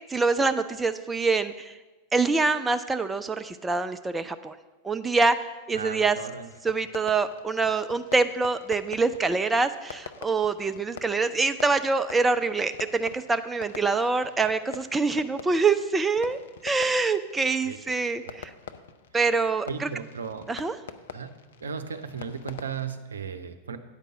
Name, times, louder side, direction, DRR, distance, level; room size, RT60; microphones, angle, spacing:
voice 1, 0.1-1.8 2.1-4.6 4.8-6.2 6.6-18.5 19.1-19.9 20.5-20.7, right 4 dB, 10° right, 11 dB, 0.3 m, -25 dB
voice 2, 5.7-6.5 17.6-17.8 18.2-18.4 19.7-20.5 21.1-21.3 21.6-23.8, right 6 dB, 70° right, 8 dB, 0.6 m, -35 dB
Fireworks, 6.5-23.0, left 7 dB, 60° left, 0.5 m, -46 dB
8.8 x 5.3 x 7.3 m, 1.2 s
figure-of-eight pair, 90°, 0 cm